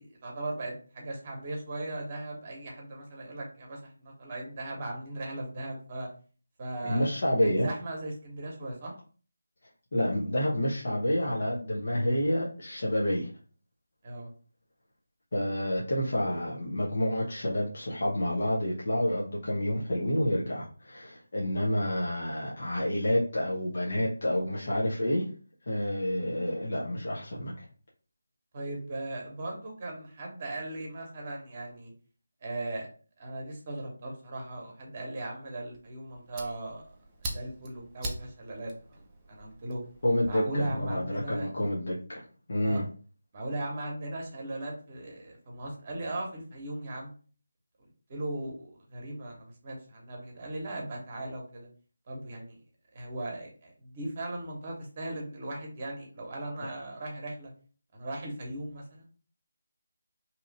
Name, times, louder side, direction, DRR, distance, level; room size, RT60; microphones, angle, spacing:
voice 1, 0.0-6.1 6.6-7.1 7.4-8.9 14.0-14.3 28.5-31.9 32.4-32.9 33.2-36.8 37.2-39.0 39.3-39.8 40.2-41.5 42.6-42.8 43.3-47.1 48.1-51.7 52.1-52.6 52.9-57.5 57.9-59.1, right 2 dB, 35° right, 0 dB, 1.0 m, -38 dB
voice 2, 6.8-7.7 9.9-13.3 15.3-25.2 25.7-27.7 40.0-42.2 42.5-42.8, left 1 dB, 55° left, -5 dB, 0.9 m, -29 dB
Fire, 35.7-40.3, right 2 dB, 20° right, 0.5 m, -42 dB
2.9 x 2.4 x 4.1 m, 0.40 s
figure-of-eight pair, 160°, 0 cm